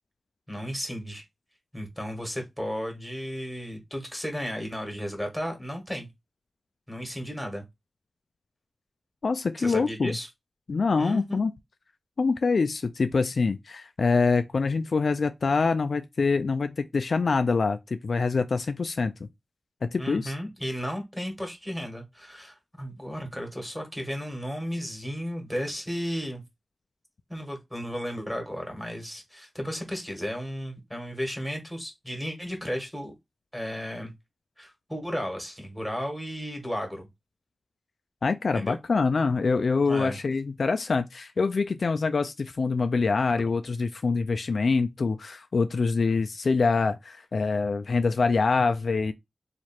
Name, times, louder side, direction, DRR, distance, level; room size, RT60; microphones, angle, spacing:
voice 1, 0.5-1.2 1.7-6.1 6.9-7.6 9.6-10.3 11.0-11.4 20.0-26.4 27.3-33.1 33.5-34.1 34.6-37.1 38.5-38.8 39.9-40.2, equal, ahead, 1.6 m, -34 dB
voice 2, 9.2-10.2 10.7-11.5 12.2-19.1 19.8-20.3 38.2-49.1, left 4 dB, 65° left, 0.3 m, -25 dB
3.1 x 2.4 x 4.3 m
wide cardioid pair, 70°, 0 cm